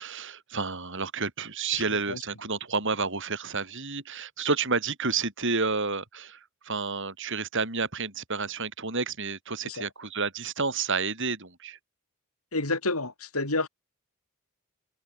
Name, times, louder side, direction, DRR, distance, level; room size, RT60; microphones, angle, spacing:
voice 1, 0.0-11.8, right 4 dB, 60° right, 6.4 m, -30 dB
voice 2, 12.5-13.7, left 2 dB, 85° left, 6.3 m, -29 dB
head